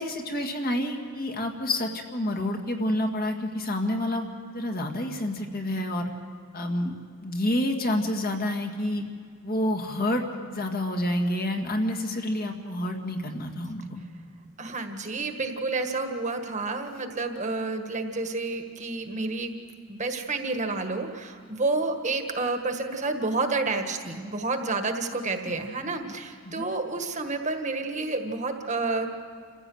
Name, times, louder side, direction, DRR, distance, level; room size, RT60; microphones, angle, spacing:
voice 1, 0.0-4.3 4.5-6.1 6.5-6.9 7.2-9.0 9.4-10.2 10.5-14.0 25.4-25.6 26.0-26.1 26.4-26.7, left 1 dB, 40° left, 3 dB, 1.9 m, -28 dB
voice 2, 14.6-19.5 19.9-29.1, right 3 dB, 35° right, 5 dB, 1.5 m, -29 dB
28.0 x 15.5 x 7.9 m, 2.1 s
head